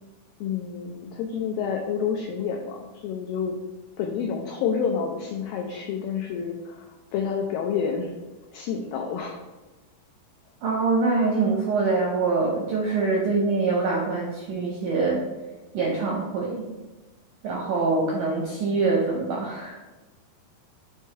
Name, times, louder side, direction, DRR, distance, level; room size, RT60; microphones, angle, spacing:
voice 1, 0.4-3.6 4.0-8.1 8.5-9.4, left 6 dB, 90° left, 2 dB, 2.0 m, -29 dB
voice 2, 10.6-15.2 15.7-16.7 17.4-19.9, right 3 dB, 80° right, -2 dB, 1.8 m, -24 dB
6.8 x 3.2 x 4.4 m, 1.1 s
omnidirectional pair, 4.7 m